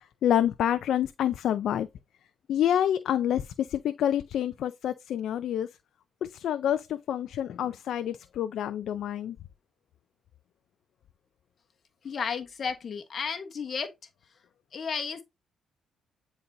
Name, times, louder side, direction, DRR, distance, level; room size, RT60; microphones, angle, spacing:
voice 1, 0.2-1.9 2.5-5.7 6.2-9.4, left 10 dB, 75° left, 0.4 m, -27 dB
voice 2, 12.0-13.9 14.7-15.2, left 6 dB, 50° left, 1.1 m, -33 dB
9.3 x 4.0 x 2.7 m
cardioid pair, 90°, 0 cm